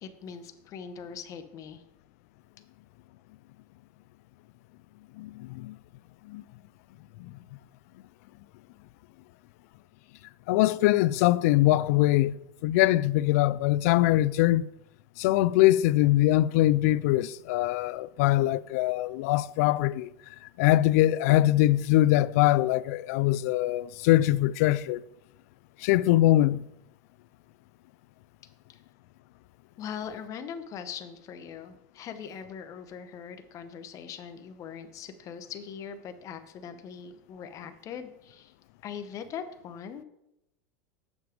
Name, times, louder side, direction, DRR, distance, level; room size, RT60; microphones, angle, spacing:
voice 1, 0.0-1.8 28.7-28.8 29.8-38.5 38.8-40.0, left 7 dB, 40° left, 1.0 m, -41 dB
voice 2, 5.2-5.7 6.3-6.4 10.5-14.6 15.2-20.1 20.6-25.0 25.8-26.7, left 15 dB, 70° left, 0.4 m, -23 dB
7.2 x 6.2 x 5.1 m
supercardioid pair, 115°, 9 cm